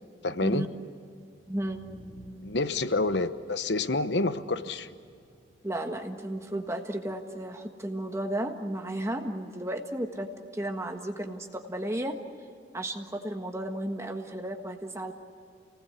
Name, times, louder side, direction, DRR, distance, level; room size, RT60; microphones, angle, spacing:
voice 1, 0.2-0.7 2.4-4.9, left 2 dB, 70° left, 11 dB, 1.0 m, -28 dB
sound 1, 1.3-7.2, equal, 85° left, 5.3 m, -53 dB
voice 2, 1.5-1.9 5.6-12.2 12.7-15.1, right 1 dB, 15° right, 3 dB, 1.5 m, -33 dB
29.0 x 19.5 x 8.2 m, 2.4 s
head